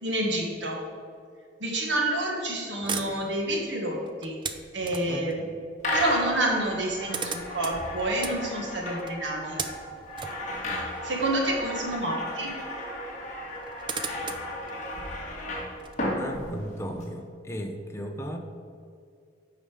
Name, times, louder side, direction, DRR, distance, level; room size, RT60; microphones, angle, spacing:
voice 1, 0.0-0.8 1.6-4.4 4.7-5.4 5.9-9.6 11.0-12.5, right 1 dB, 65° right, 0 dB, 1.5 m, -28 dB
sound 1, 2.8-5.3 6.4-6.5 6.7-12.2 12.5-12.6 13.4-15.9, right 5 dB, 25° right, 0.5 m, -38 dB
voice 2, 5.1-5.5 16.1-18.4, equal, 15° left, 3 dB, 0.8 m, -36 dB
sound 2, 5.8-17.0, left 1 dB, 40° left, 1.7 m, -34 dB
8.8 x 5.6 x 4.9 m, 2.3 s
head